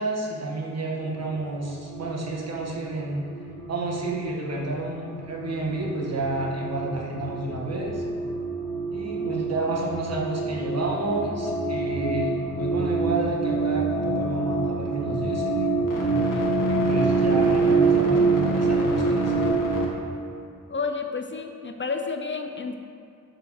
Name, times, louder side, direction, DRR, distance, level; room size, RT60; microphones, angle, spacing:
voice 1, 0.0-3.3 3.7-8.0 8.9-19.5, right 2 dB, 50° right, -2 dB, 1.5 m, -30 dB
sound 1, 1.0-19.9, right 3 dB, 75° left, 1.6 m, -26 dB
voice 2, 20.7-22.8, left 4 dB, 35° left, 5 dB, 0.5 m, -30 dB
7.8 x 5.6 x 6.4 m, 2.5 s
wide cardioid pair, 125°, 32 cm